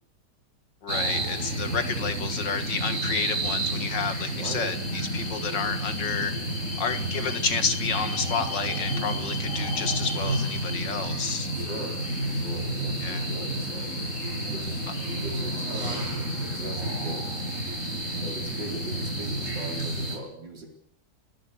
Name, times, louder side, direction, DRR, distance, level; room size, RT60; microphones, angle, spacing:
voice 1, 0.8-6.3 6.8-11.5 13.0-13.3, left 5 dB, 75° left, 9 dB, 2.5 m, -30 dB
sound 1, 0.9-20.2, right 1 dB, 45° right, 7.2 m, -30 dB
voice 2, 4.3-4.7 11.5-12.0 12.3-14.8 15.2-17.3 18.2-20.7, right 1 dB, 85° right, 3 dB, 4.8 m, -40 dB
29.5 x 17.0 x 6.9 m, 0.69 s
omnidirectional pair, 1.9 m